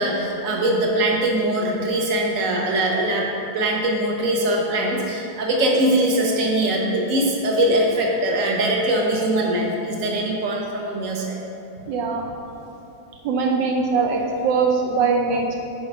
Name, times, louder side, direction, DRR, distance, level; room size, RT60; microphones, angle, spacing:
voice 1, 0.0-3.2 3.5-11.4, right 1 dB, 50° right, -1 dB, 1.4 m, -22 dB
voice 2, 11.9-12.2 13.2-15.6, right 4 dB, 80° right, 1 dB, 1.3 m, -21 dB
7.8 x 5.0 x 5.3 m, 2.7 s
omnidirectional pair, 2.0 m